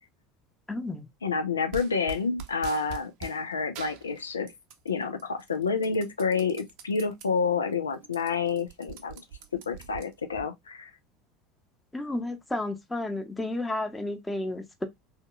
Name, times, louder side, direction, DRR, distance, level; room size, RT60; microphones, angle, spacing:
voice 1, 0.7-1.1 11.9-14.9, left 2 dB, 10° left, 0.8 m, -32 dB
voice 2, 1.2-4.5 4.8-9.2 9.5-10.9, left 5 dB, 85° left, 0.5 m, -29 dB
sound 1, 1.7-3.4 3.7-4.9 5.2-7.3 7.7-7.8 8.0-10.4, right 6 dB, 60° right, 0.6 m, -43 dB
3.4 x 2.8 x 2.2 m
figure-of-eight pair, 75°, 0 cm